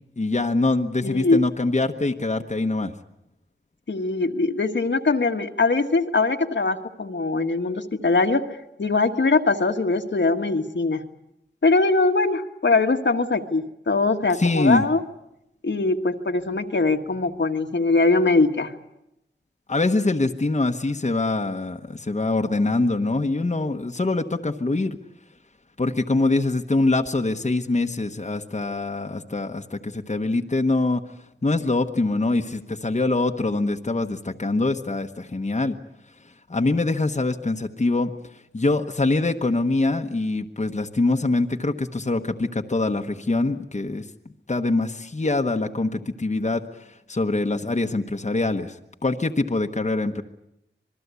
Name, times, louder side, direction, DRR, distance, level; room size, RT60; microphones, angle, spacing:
voice 1, 0.2-2.9 14.4-14.8 19.7-25.0 25.8-31.0 31.4-35.8 36.5-38.1 38.5-44.0 44.5-50.2, left 2 dB, 35° left, 4 dB, 1.1 m, -24 dB
voice 2, 1.0-1.4 3.9-8.4 8.8-11.0 11.6-15.0 15.6-18.7, left 3 dB, 70° left, 4 dB, 1.5 m, -22 dB
27.0 x 20.5 x 8.2 m, 0.83 s
wide cardioid pair, 70°, 20 cm